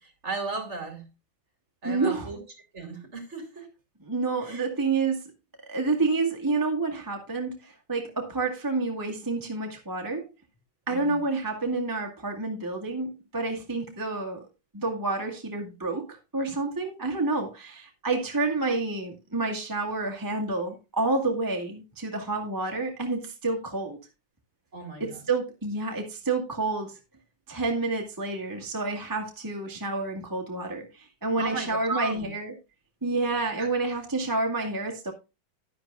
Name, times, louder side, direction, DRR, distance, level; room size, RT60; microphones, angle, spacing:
voice 1, 0.0-1.1 1.8-2.4 2.7-3.7 4.4-4.8 10.9-11.3 24.7-25.2 31.3-32.3 33.6-33.7, right 3 dB, 35° right, 2.6 m, -36 dB
voice 2, 1.8-2.3 4.0-5.2 5.7-10.3 10.9-14.5 14.7-24.0 25.0-27.0 27.5-32.6 33.0-35.1, right 3 dB, 10° right, 1.5 m, -29 dB
11.0 x 11.0 x 2.5 m
omnidirectional pair, 2.2 m